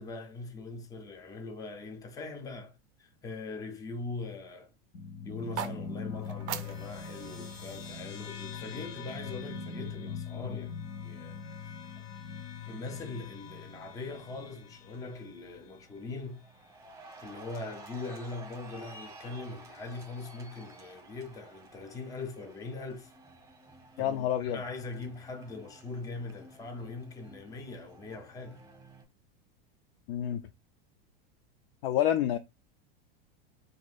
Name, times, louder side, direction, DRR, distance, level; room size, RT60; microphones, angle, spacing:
voice 1, 0.0-4.7 5.3-10.8 11.0-11.4 12.0-12.1 12.7-16.4 17.2-23.1 24.0-28.6, left 3 dB, 10° left, 0.5 m, -41 dB
sound 1, 4.9-15.7, left 6 dB, 85° left, 0.9 m, -42 dB
sound 2, 5.3-9.5, right 10 dB, 45° right, 0.5 m, -43 dB
Cheering, 14.4-14.6 14.9-29.0, right 2 dB, 10° right, 0.8 m, -53 dB
voice 2, 24.0-24.6 30.1-30.4 31.8-32.4, left 11 dB, 65° left, 0.4 m, -28 dB
2.7 x 2.6 x 3.9 m
supercardioid pair, 135°, 30 cm